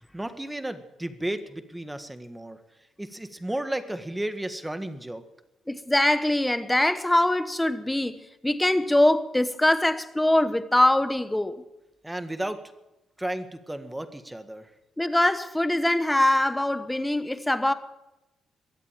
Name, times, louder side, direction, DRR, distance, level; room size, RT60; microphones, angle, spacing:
voice 1, 0.1-2.6 3.0-5.2 12.0-12.6 13.2-14.7, right 1 dB, 10° right, 1.6 m, -33 dB
voice 2, 5.7-11.6 15.0-17.7, left 1 dB, 10° left, 1.1 m, -23 dB
22.5 x 8.3 x 7.5 m
cardioid pair, 90°, 0 cm